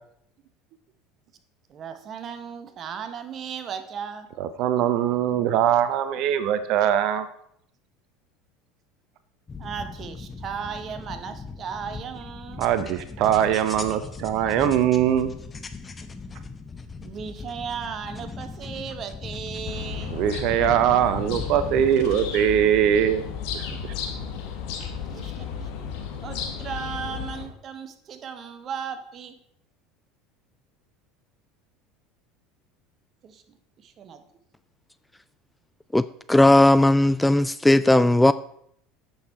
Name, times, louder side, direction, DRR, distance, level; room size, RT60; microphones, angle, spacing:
voice 1, 1.7-4.3 9.6-12.6 17.0-20.2 25.1-25.7 26.2-29.4 33.2-33.4 33.8-34.2, right 7 dB, 45° right, 9 dB, 1.2 m, -36 dB
voice 2, 4.4-7.3 12.6-15.3 20.1-23.2 23.5-23.6, right 10 dB, 60° right, 12 dB, 0.7 m, -22 dB
sound 1, 9.5-22.2, left 4 dB, 25° left, 0.9 m, -39 dB
sound 2, 19.6-27.4, left 7 dB, 65° left, 1.5 m, -34 dB
voice 3, 35.9-38.3, left 1 dB, 5° left, 15 dB, 0.3 m, -17 dB
8.4 x 6.5 x 4.4 m, 0.69 s
hypercardioid pair, 75°, 0 cm